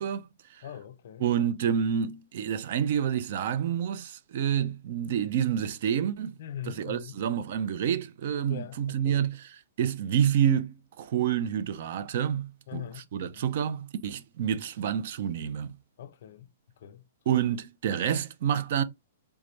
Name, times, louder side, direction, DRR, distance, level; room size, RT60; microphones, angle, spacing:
voice 1, 0.0-0.7 1.2-6.3 6.6-15.7 17.3-18.8, right 9 dB, 45° right, 0.5 m, -28 dB
voice 2, 0.6-1.2 6.4-7.2 8.5-9.3 12.7-13.5 16.0-16.5 16.8-17.0, left 10 dB, 55° left, 0.5 m, -41 dB
3.4 x 3.2 x 2.6 m
hypercardioid pair, 170°, 0 cm